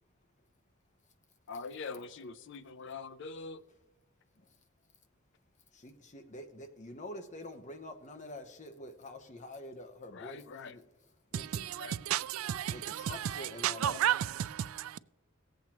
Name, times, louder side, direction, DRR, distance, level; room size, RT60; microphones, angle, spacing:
voice 1, 1.5-3.6 10.1-10.7 11.8-12.0, left 4 dB, 60° left, 0.5 m, -43 dB
voice 2, 5.7-10.9 11.3-11.7 12.7-14.0, left 1 dB, 35° left, 0.9 m, -46 dB
voice 3, 11.3-15.0, right 10 dB, 90° right, 0.3 m, -33 dB
18.0 x 8.0 x 3.0 m
head